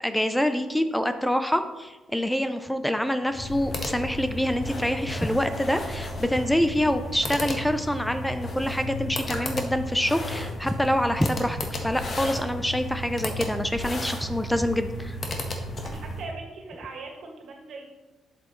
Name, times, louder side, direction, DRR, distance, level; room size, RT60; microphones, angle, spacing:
voice 1, 0.0-15.2, equal, 5° left, 9 dB, 0.5 m, -26 dB
sound 1, 3.3-16.3, left 1 dB, 45° left, 1.3 m, -33 dB
voice 2, 15.8-17.8, right 3 dB, 70° right, 0 dB, 2.0 m, -40 dB
7.6 x 7.5 x 3.1 m, 1.1 s
cardioid pair, 90°, 0 cm